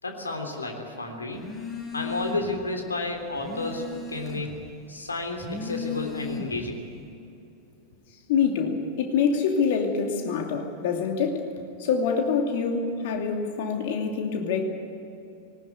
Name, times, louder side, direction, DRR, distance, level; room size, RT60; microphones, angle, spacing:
voice 1, 0.0-1.4 1.9-4.6 4.9-6.8, left 2 dB, 75° left, 3 dB, 3.4 m, -31 dB
Telephone, 1.3-2.6 3.0-4.6 5.3-6.8, left 4 dB, 25° left, 6.6 m, -36 dB
voice 2, 8.3-11.5 11.8-14.6, left 6 dB, 50° left, 3 dB, 2.6 m, -25 dB
20.5 x 19.0 x 9.4 m, 2.8 s
figure-of-eight pair, 90°, 0 cm